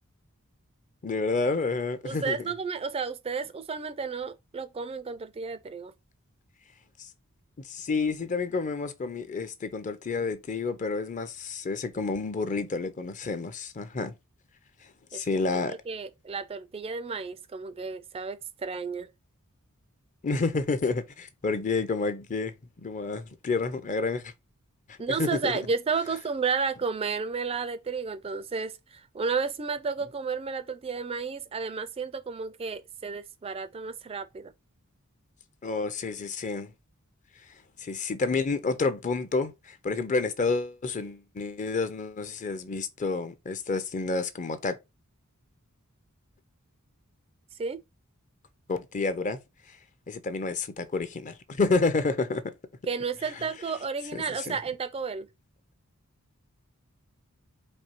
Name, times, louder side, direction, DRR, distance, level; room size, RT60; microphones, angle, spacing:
voice 1, 1.0-2.4 7.0-7.1 7.6-14.1 15.1-15.8 20.2-22.5 22.8-24.3 25.1-25.5 35.6-36.7 37.8-44.8 48.7-49.4 49.7-49.8 50.1-52.5 54.1-54.6, left 3 dB, 35° left, 0.5 m, -29 dB
voice 2, 2.0-5.9 15.1-15.2 15.5-19.1 25.0-34.5 47.6-47.8 52.9-55.3, right 5 dB, 25° right, 0.3 m, -32 dB
4.2 x 2.7 x 4.3 m
head